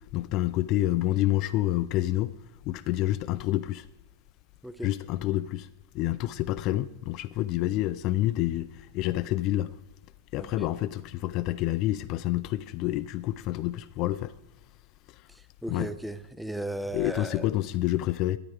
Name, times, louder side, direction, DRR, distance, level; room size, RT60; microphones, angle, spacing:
voice 1, 0.1-2.3 2.7-3.9 4.8-5.7 5.9-9.7 10.3-14.3 15.1-15.2 15.7-15.9 16.9-18.4, left 15 dB, 40° left, 0.4 m, -28 dB
voice 2, 15.6-17.4, right 1 dB, ahead, 0.6 m, -35 dB
13.5 x 9.8 x 4.7 m
figure-of-eight pair, 90°, 0 cm